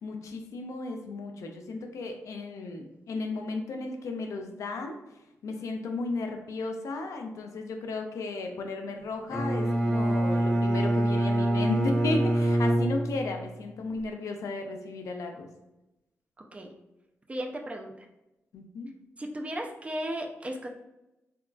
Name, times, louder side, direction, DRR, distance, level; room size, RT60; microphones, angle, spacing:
voice 1, 0.0-5.0 5.4-15.5 18.5-18.9, left 3 dB, 80° left, 4 dB, 0.4 m, -34 dB
Bowed string instrument, 9.3-13.5, right 1 dB, 5° left, 0.7 m, -25 dB
voice 2, 17.3-18.1 19.2-20.7, right 1 dB, 25° right, 2 dB, 0.4 m, -35 dB
3.6 x 2.2 x 2.3 m, 0.94 s
cardioid pair, 95°, 5 cm